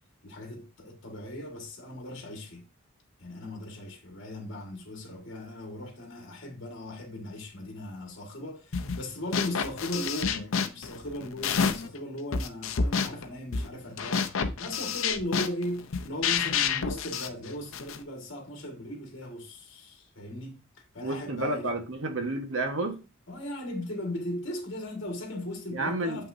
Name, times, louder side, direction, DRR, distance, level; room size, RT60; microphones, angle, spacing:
voice 1, 0.2-2.7 3.2-21.7 23.3-26.3, left 1 dB, 60° left, 1.9 m, -38 dB
sound 1, 8.7-9.0 9.3-12.0 12.3-18.0, left 6 dB, 80° left, 0.7 m, -29 dB
voice 2, 21.0-22.9 25.7-26.3, right 2 dB, 75° right, 1.4 m, -30 dB
7.2 x 5.8 x 2.7 m
head